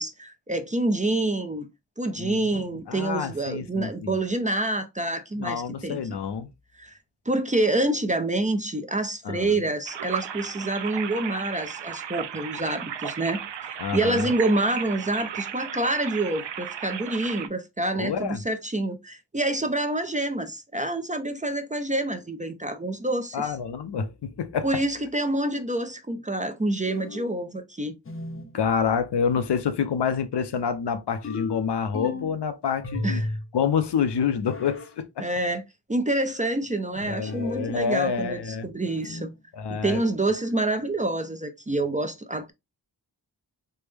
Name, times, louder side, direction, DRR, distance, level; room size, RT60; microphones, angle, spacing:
voice 1, 0.0-1.7 2.0-6.0 6.8-7.0 7.3-23.5 24.6-27.9 33.0-33.4 35.2-35.6 35.9-39.3 39.7-42.5, right 2 dB, 20° right, 0.4 m, -27 dB
voice 2, 2.9-4.2 5.4-6.5 9.2-9.6 13.8-14.3 18.0-18.4 23.3-24.7 28.5-33.2 33.5-35.3 37.0-38.7 39.5-40.0, left 7 dB, 70° left, 0.6 m, -27 dB
sound 1, 9.9-17.5, right 9 dB, 85° right, 0.5 m, -35 dB
sound 2, 26.9-27.4 28.1-28.6 31.2-32.4 32.8-33.5 34.4-34.9 37.2-37.8 38.9-39.4, left 2 dB, 30° left, 0.6 m, -34 dB
3.3 x 2.1 x 3.2 m
wide cardioid pair, 55°, 42 cm